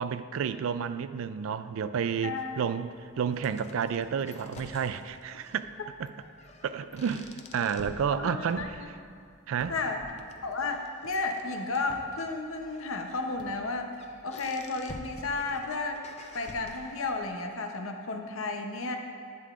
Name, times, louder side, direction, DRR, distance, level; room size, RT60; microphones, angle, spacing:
voice 1, 0.0-2.9 3.2-5.6 6.0-6.1 6.6-8.8 9.5-9.8, right 7 dB, 70° right, 12 dB, 0.3 m, -30 dB
voice 2, 2.2-2.6 8.1-8.7 9.7-10.0 10.4-13.9 14.2-16.0 16.3-19.0, left 3 dB, 70° left, 4 dB, 0.7 m, -33 dB
sound 1, 2.4-17.4, left 3 dB, 30° left, 0.4 m, -50 dB
sound 2, 9.6-9.7 10.3-10.5 11.0-11.2 11.9-12.1 13.4-13.5 15.2-15.3, right 1 dB, 20° right, 0.7 m, -50 dB
11.0 x 8.4 x 2.4 m, 2.2 s
head